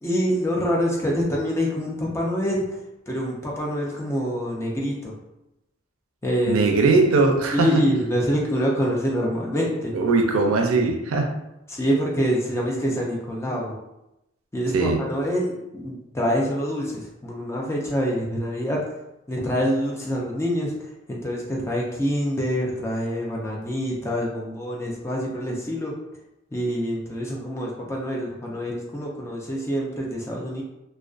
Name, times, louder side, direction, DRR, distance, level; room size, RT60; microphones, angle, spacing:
voice 1, 0.0-2.8 3.1-5.1 6.2-6.7 7.5-9.9 11.7-13.8 14.5-18.9 19.3-25.9 26.5-30.6, equal, 15° left, -2 dB, 0.3 m, -26 dB
voice 2, 6.5-7.7 9.9-11.3 14.7-15.0, right 3 dB, 85° right, 4 dB, 0.4 m, -20 dB
2.4 x 2.2 x 2.3 m, 0.91 s
head